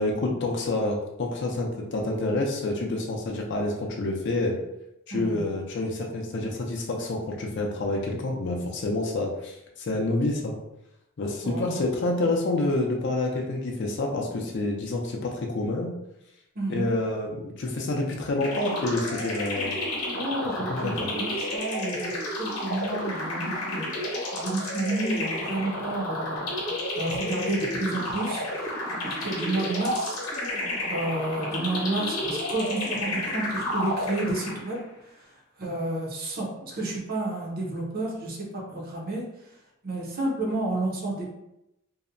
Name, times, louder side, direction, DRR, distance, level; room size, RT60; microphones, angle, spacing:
voice 1, 0.0-4.6 5.1-10.5 11.2-15.9 16.7-19.8 20.7-21.1, left 2 dB, 55° left, 0 dB, 0.4 m, -28 dB
voice 2, 5.1-5.5 11.4-11.8 16.6-16.9 20.1-23.9 24.3-26.4 26.9-30.2 30.9-34.8 35.2-35.3 35.6-39.2 39.8-41.3, right 2 dB, 45° right, -2 dB, 0.6 m, -31 dB
sound 1, 18.4-34.8, left 1 dB, 80° left, 0.7 m, -31 dB
2.7 x 2.1 x 2.5 m, 0.85 s
head